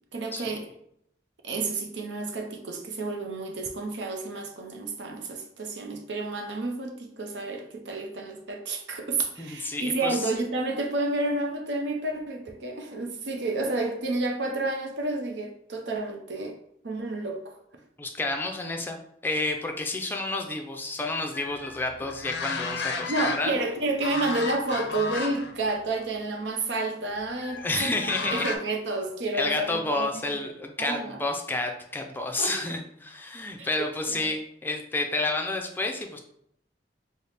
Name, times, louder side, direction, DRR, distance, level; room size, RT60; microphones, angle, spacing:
voice 1, 0.1-0.7 1.4-16.6 16.8-17.5 23.1-30.5 30.8-31.2 32.4-32.6 33.6-34.3, right 2 dB, 90° right, 4 dB, 0.6 m, -30 dB
voice 2, 9.4-10.2 18.0-23.6 27.6-28.5 29.3-36.2, left 2 dB, 10° left, 3 dB, 0.4 m, -30 dB
sound 1, 21.3-23.7 24.0-25.5 25.9-26.1 27.4-28.6, left 4 dB, 70° left, 0.4 m, -33 dB
4.1 x 2.1 x 3.2 m, 0.72 s
head